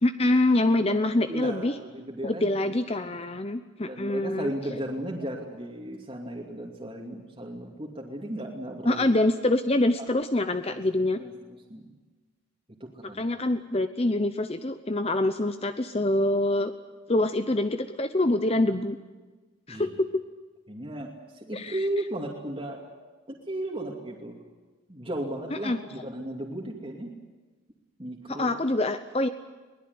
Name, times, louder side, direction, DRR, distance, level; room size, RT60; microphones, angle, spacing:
voice 1, 0.0-1.8 2.2-4.5 8.9-11.2 13.0-16.7 17.1-19.0 19.7-20.2 21.5-21.8 25.5-25.8 28.3-29.3, left 1 dB, 30° left, 9 dB, 0.8 m, -25 dB
voice 2, 1.3-2.5 3.9-9.1 10.7-10.8 11.2-11.3 11.7-11.9 12.8-13.2 19.7-19.9 20.7-21.1 21.4-22.8 23.5-24.4 24.9-27.1 28.0-28.6, right 1 dB, 25° right, -2 dB, 2.5 m, -35 dB
22.5 x 20.0 x 9.7 m, 1.3 s
head